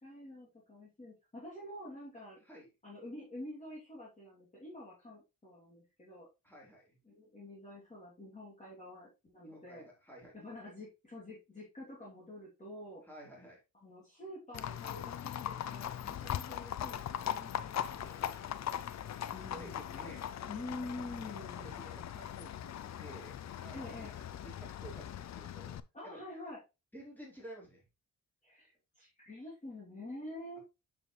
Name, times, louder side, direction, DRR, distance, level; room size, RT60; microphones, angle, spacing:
voice 1, 0.0-2.4 2.8-6.3 7.0-9.9 10.3-13.0 13.8-18.1 19.3-19.8 20.5-21.8 23.7-24.1 25.9-26.6 28.4-30.6, left 1 dB, 20° left, -5 dB, 2.7 m, -47 dB
voice 2, 6.4-7.0 9.4-10.6 13.0-13.6 17.7-18.4 19.1-20.3 21.5-23.3 23.6-23.9 24.4-26.2 26.9-27.8, right 1 dB, 5° left, -3 dB, 3.8 m, -53 dB
Livestock farm animals working animals, 14.5-25.8, left 10 dB, 50° left, 0.5 m, -40 dB
7.3 x 6.9 x 3.1 m, 0.25 s
wide cardioid pair, 160°, 34 cm